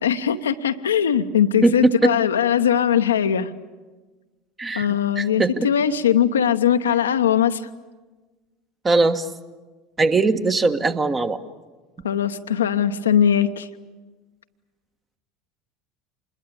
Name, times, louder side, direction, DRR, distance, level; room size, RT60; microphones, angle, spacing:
voice 1, 0.0-3.5 4.7-7.6 12.0-13.7, left 9 dB, 75° left, 8 dB, 0.9 m, -20 dB
voice 2, 1.6-2.1 4.6-4.9 5.2-5.7 8.8-9.3 10.0-11.4, right 3 dB, 20° right, 9 dB, 1.4 m, -20 dB
26.5 x 21.0 x 8.6 m, 1.3 s
figure-of-eight pair, 75°, 0 cm